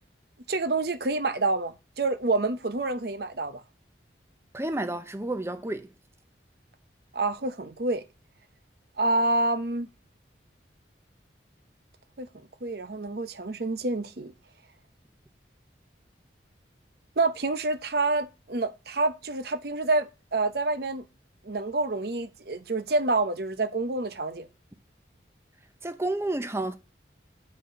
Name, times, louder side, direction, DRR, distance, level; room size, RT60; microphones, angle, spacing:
voice 1, 0.5-3.6 7.1-8.0 9.0-9.9 12.2-12.3 12.6-14.3 17.2-21.0 21.4-24.5, right 2 dB, 60° right, 0.8 m, -27 dB
voice 2, 4.5-5.9 25.8-26.8, right 2 dB, 15° right, 0.7 m, -30 dB
9.5 x 4.3 x 5.2 m
head